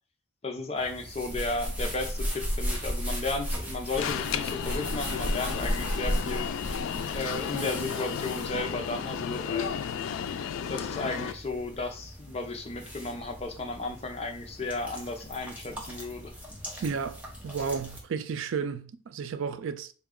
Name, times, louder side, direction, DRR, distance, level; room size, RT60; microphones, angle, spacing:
voice 1, 0.4-6.5 7.1-9.7 10.7-16.3, left 3 dB, 30° left, 0.5 m, -34 dB
sound 1, 0.8-18.0, equal, 5° right, 0.7 m, -36 dB
Alarm, 4.0-11.3, left 8 dB, 80° left, 0.3 m, -33 dB
voice 2, 16.8-17.2 17.4-19.9, right 5 dB, 75° right, 0.4 m, -32 dB
4.0 x 2.3 x 3.6 m
head